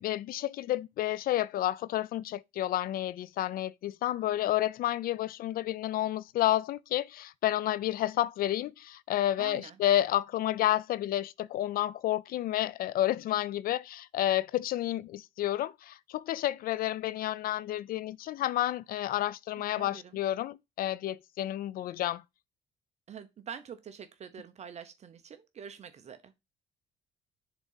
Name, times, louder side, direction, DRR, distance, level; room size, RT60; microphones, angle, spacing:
voice 1, 0.0-22.2, left 13 dB, 60° left, 0.4 m, -30 dB
voice 2, 9.4-9.8 19.6-20.2 23.1-26.3, right 7 dB, 40° right, 0.7 m, -46 dB
7.0 x 3.8 x 5.5 m
cardioid pair, 110°, 17 cm